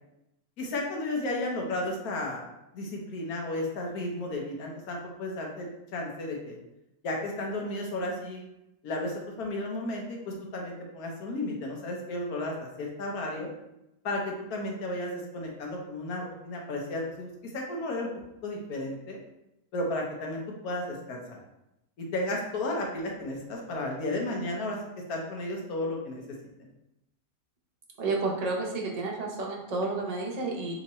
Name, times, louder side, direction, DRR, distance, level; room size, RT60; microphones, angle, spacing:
voice 1, 0.6-2.4 2.7-6.6 7.0-8.4 8.8-13.5 14.0-17.3 17.5-18.1 18.4-19.2 19.7-21.4 22.0-24.8 25.1-26.2 26.6-26.7, left 1 dB, 80° left, 0 dB, 1.4 m, -33 dB
voice 2, 28.0-30.8, right 3 dB, 40° right, -1 dB, 0.6 m, -31 dB
3.5 x 3.0 x 4.1 m, 0.88 s
omnidirectional pair, 1.6 m